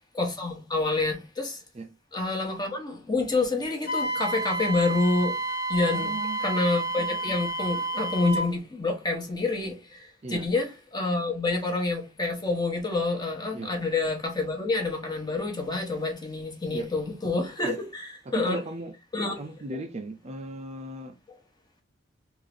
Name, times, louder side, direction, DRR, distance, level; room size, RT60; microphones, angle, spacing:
voice 1, 0.1-1.6 2.1-5.4 5.7-6.1 6.4-18.6 19.1-19.4, left 3 dB, 20° left, 1.0 m, -28 dB
Wind instrument woodwind instrument, 3.8-8.5, right 2 dB, 45° left, 1.0 m, -30 dB
voice 2, 5.8-6.4 10.2-10.4 13.5-13.7 16.7-16.9 17.6-17.8 18.3-18.9 19.4-21.2, right 2 dB, 30° right, 0.4 m, -36 dB
3.6 x 2.5 x 3.4 m
head